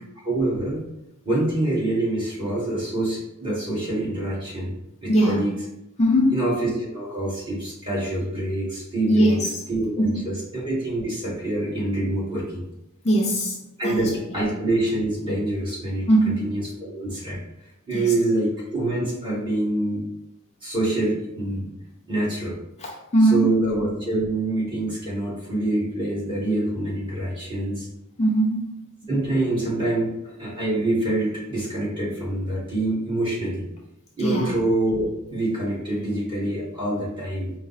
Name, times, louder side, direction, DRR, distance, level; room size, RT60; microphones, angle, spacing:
voice 1, 0.2-0.8 1.2-5.5 6.3-9.4 9.7-12.6 13.8-16.1 16.4-17.4 17.8-20.0 20.6-21.7 22.1-22.6 23.3-27.9 29.1-33.7 34.2-37.5, right 1 dB, 25° right, -6 dB, 1.5 m, -26 dB
voice 2, 5.1-5.4 6.0-6.4 9.1-9.6 10.0-10.2 13.0-13.6 13.8-14.1 16.1-16.5 17.9-18.1 22.8-23.5 28.2-28.7 34.2-34.5, right 1 dB, 30° left, -1 dB, 0.5 m, -20 dB
4.8 x 2.0 x 4.0 m, 0.85 s
head